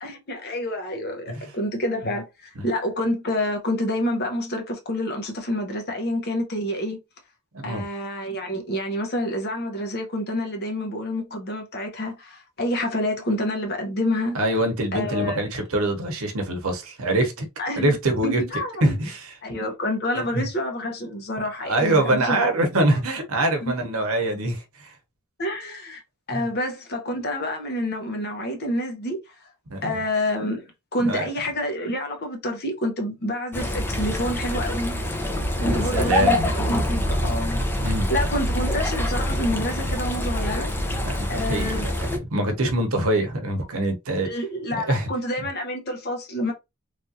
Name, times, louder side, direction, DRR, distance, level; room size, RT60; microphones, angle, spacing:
voice 1, 0.0-7.0 7.6-14.4 14.9-15.4 17.6-18.0 18.2-18.9 19.4-22.4 23.6-23.7 25.4-26.0 26.3-29.5 29.8-30.7 30.9-35.0 35.6-37.6 38.1-40.7 41.3-41.9 44.2-46.5, left 1 dB, 50° left, 0.9 m, -28 dB
voice 2, 14.3-17.5 17.8-18.4 18.8-19.4 20.3-20.4 21.6-24.9 26.3-26.4 29.7-30.0 31.0-31.3 35.7-36.5 37.8-38.1 41.0-44.3 44.7-45.1, right 1 dB, 75° right, 0.9 m, -24 dB
sound 1, 33.5-42.2, left 1 dB, 10° left, 0.5 m, -25 dB
3.3 x 2.5 x 2.7 m
head